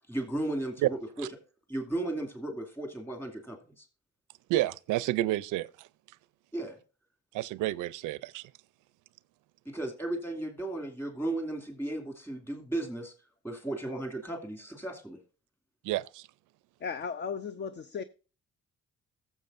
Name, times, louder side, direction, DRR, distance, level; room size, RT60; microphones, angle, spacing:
voice 1, 0.1-1.3 1.7-3.9 6.5-6.8 9.7-13.1 13.4-15.2, right 1 dB, 5° left, 2.4 m, -35 dB
voice 2, 4.5-5.9 7.3-8.5 15.8-16.3, right 16 dB, 85° right, 0.5 m, -30 dB
voice 3, 16.8-18.0, left 6 dB, 35° left, 0.5 m, -35 dB
15.0 x 7.3 x 2.5 m
cardioid pair, 90°, 30 cm